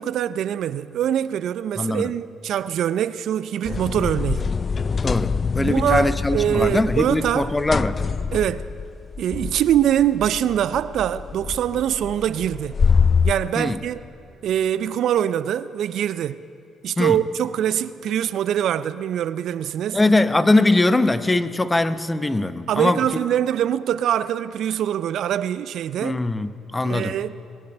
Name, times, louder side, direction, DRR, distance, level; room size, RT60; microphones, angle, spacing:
voice 1, 0.0-4.5 5.6-7.5 8.3-8.7 9.2-12.8 13.2-14.0 14.4-16.4 16.8-20.0 22.7-26.2 26.8-27.4, right 10 dB, 70° right, 0.4 m, -23 dB
voice 2, 1.8-2.1 5.0-8.2 13.6-13.8 17.0-17.2 19.9-23.0 26.0-27.2, left 2 dB, 20° left, 0.8 m, -21 dB
sound 1, 3.6-13.3, left 5 dB, 40° left, 0.3 m, -25 dB
21.0 x 8.6 x 8.1 m
hypercardioid pair, 50°, 0 cm